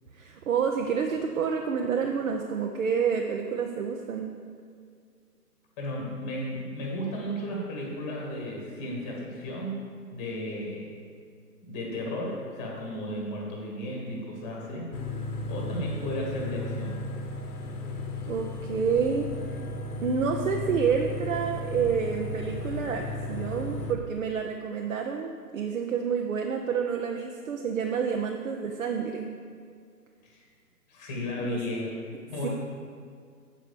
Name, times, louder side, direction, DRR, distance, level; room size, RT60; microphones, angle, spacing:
voice 1, 0.1-4.3 18.3-19.6 20.0-29.3 31.4-31.6 32.4-32.5, right 6 dB, 55° right, 2 dB, 0.7 m, -29 dB
voice 2, 5.8-9.8 10.1-10.9 11.6-14.9 15.5-17.0 30.2-30.4 30.9-31.9 32.3-32.5, left 1 dB, 15° left, -2 dB, 1.2 m, -34 dB
sound 1, 14.9-23.9, left 1 dB, 70° left, 1.1 m, -34 dB
7.5 x 5.0 x 6.7 m, 2.2 s
hypercardioid pair, 150°, 48 cm